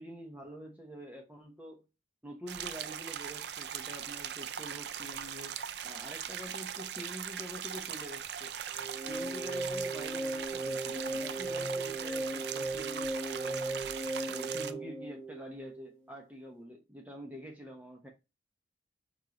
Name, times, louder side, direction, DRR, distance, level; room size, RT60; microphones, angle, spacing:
voice 1, 0.0-1.8 2.2-8.5 9.1-13.8 14.3-18.1, equal, 10° right, 0.7 m, -46 dB
sound 1, 2.5-14.7, right 9 dB, 70° right, 0.4 m, -40 dB
sound 2, 8.7-16.0, right 2 dB, 10° left, 1.1 m, -37 dB
4.5 x 3.0 x 3.7 m
head